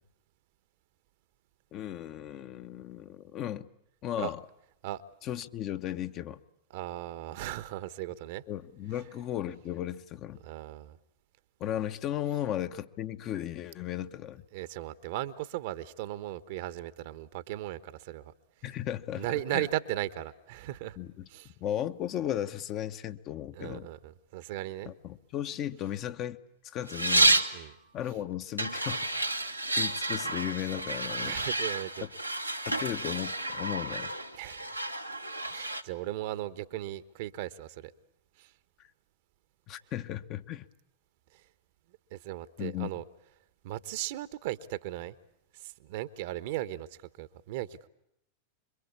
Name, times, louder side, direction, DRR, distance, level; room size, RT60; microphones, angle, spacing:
voice 1, 1.7-3.7 4.0-4.4 5.2-6.4 8.5-10.4 11.6-14.4 18.6-19.7 21.0-21.3 21.6-23.9 24.8-26.4 26.6-27.7 27.9-29.3 29.7-31.4 32.0-32.1 32.6-34.1 39.7-40.6 42.6-42.9, left 11 dB, 35° left, 1.1 m, -35 dB
voice 2, 6.7-8.4 10.4-11.0 14.5-18.3 19.1-21.0 21.3-21.5 23.5-24.9 27.5-27.7 31.2-32.1 34.3-34.8 35.5-37.9 38.4-38.5 41.3-41.4 42.1-43.0 43.6-45.2 45.5-46.9 47.2-47.8, right 14 dB, 50° right, 1.1 m, -37 dB
sound 1, 26.9-27.6 28.6-35.8, right 2 dB, 90° right, 1.4 m, -30 dB
26.0 x 23.5 x 8.4 m
figure-of-eight pair, 90°, 0 cm